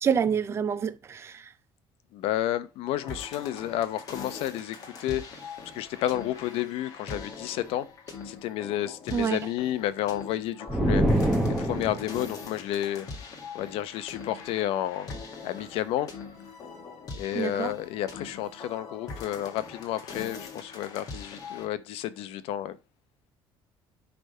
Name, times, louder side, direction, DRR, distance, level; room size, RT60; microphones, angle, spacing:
voice 1, 0.0-1.5 9.1-9.4 17.3-17.7, right 7 dB, 25° right, 0.4 m, -27 dB
voice 2, 2.1-5.2 5.7-7.9 8.2-13.3 13.5-15.1 15.4-16.1 17.1-22.8, left 12 dB, 70° left, 0.7 m, -31 dB
sound 1, 3.0-21.7, left 4 dB, 35° left, 1.7 m, -42 dB
sound 2, 10.7-12.3, right 1 dB, ahead, 0.9 m, -24 dB
10.0 x 3.4 x 5.4 m
cardioid pair, 175°, 10 cm